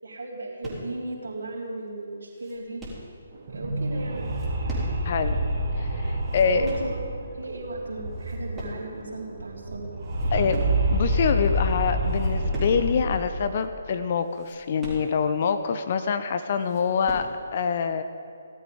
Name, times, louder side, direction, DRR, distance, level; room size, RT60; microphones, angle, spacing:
voice 1, 0.0-2.8 3.5-4.3 6.3-9.9, right 2 dB, 65° right, -3 dB, 3.7 m, -36 dB
sound 1, 0.6-1.1 1.6-1.7 2.0-3.2 4.1-5.2 5.5-5.6 6.0-7.0 7.6-7.8 8.1-9.1 9.4-9.5 9.9-11.0 11.5-11.6 12.0-12.9 13.2-13.3 13.6-13.7 14.2-15.5 16.0-16.1 16.4-17.4, equal, 10° right, 3.9 m, -40 dB
sound 2, 3.3-8.7 8.9-9.0 9.3-13.6, right 1 dB, 40° right, 2.8 m, -27 dB
voice 2, 5.0-5.4 5.8-6.7 10.3-10.6 10.9-18.0, left 6 dB, 40° left, 10 dB, 0.6 m, -25 dB
18.5 x 12.5 x 3.6 m, 2.2 s
figure-of-eight pair, 140°, 0 cm